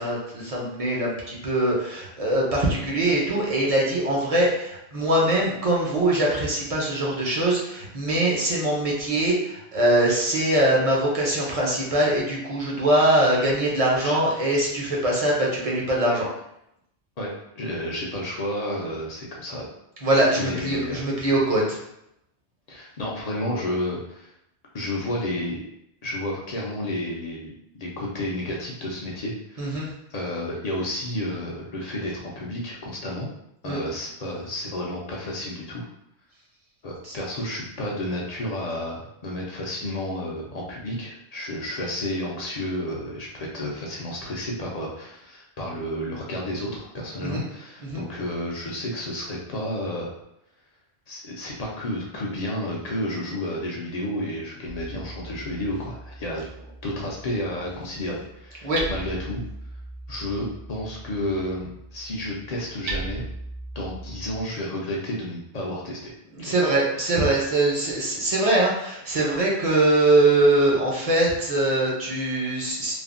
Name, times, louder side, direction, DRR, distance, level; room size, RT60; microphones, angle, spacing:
voice 1, 0.0-16.3 20.0-21.8 29.6-29.9 33.7-33.8 37.0-37.1 47.2-47.4 47.8-48.0 58.6-58.8 66.4-72.9, right 1 dB, 40° right, -3 dB, 0.6 m, -22 dB
voice 2, 17.6-19.6 20.4-21.1 22.7-24.3 24.7-25.6 26.0-27.5 27.8-33.3 33.6-35.9 36.8-50.1 51.1-56.4 56.8-59.4 60.1-63.2 63.7-66.1 66.4-66.5, left 1 dB, 50° left, -3 dB, 0.5 m, -31 dB
Hammer, 54.6-64.4, right 2 dB, 70° right, 0.8 m, -38 dB
3.3 x 2.1 x 2.4 m, 0.79 s
omnidirectional pair, 1.2 m